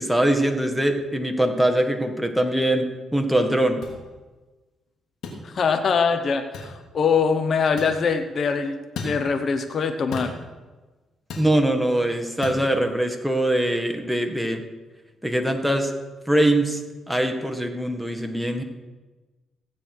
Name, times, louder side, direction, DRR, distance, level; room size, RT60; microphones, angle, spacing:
voice 1, 0.0-3.8 11.4-14.6 15.2-15.9 16.2-16.8 17.1-18.6, right 1 dB, ahead, 3 dB, 1.7 m, -22 dB
sound 1, 3.8-4.0 5.2-5.4 6.5-6.7 7.8-8.0 8.9-9.2 10.1-10.4 11.3-11.5 12.4-12.6, left 3 dB, 75° left, 2.8 m, -33 dB
voice 2, 5.4-8.8 9.0-10.3, left 5 dB, 55° left, 8 dB, 0.9 m, -23 dB
16.0 x 8.8 x 4.8 m, 1.2 s
cardioid pair, 80°, 0 cm